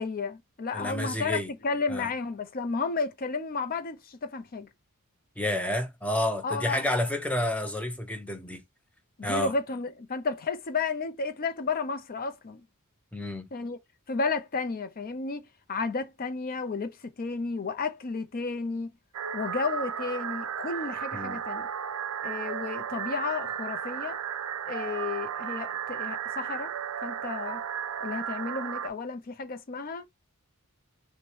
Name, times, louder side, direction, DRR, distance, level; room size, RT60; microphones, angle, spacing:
voice 1, 0.0-4.7 6.4-6.9 9.2-12.6 13.5-13.8 14.1-18.9 19.3-21.7 22.2-24.2 24.7-26.7 27.0-27.6 28.0-30.1, left 4 dB, 40° left, 0.5 m, -32 dB
voice 2, 0.7-1.5 1.9-2.1 5.4-8.6 9.2-9.5 13.1-13.5 21.1-21.4, left 1 dB, 5° left, 0.6 m, -30 dB
sound 1, 19.1-28.9, right 8 dB, 70° right, 0.4 m, -34 dB
5.9 x 2.1 x 3.1 m
head